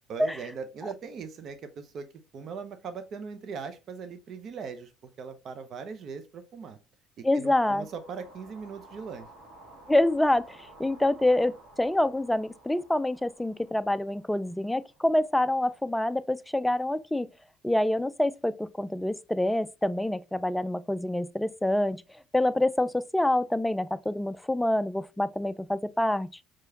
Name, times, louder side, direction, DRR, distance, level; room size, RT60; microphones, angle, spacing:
voice 1, 0.1-2.1 2.3-4.9 5.2-6.8 7.2-9.3, right 5 dB, 55° right, 0.8 m, -39 dB
voice 2, 7.2-7.9 9.9-17.3 17.6-22.0 22.3-26.4, left 1 dB, 5° left, 0.3 m, -26 dB
sound 1, 7.4-15.6, right 2 dB, 70° right, 1.6 m, -53 dB
4.7 x 3.0 x 2.8 m
hypercardioid pair, 65°, 0 cm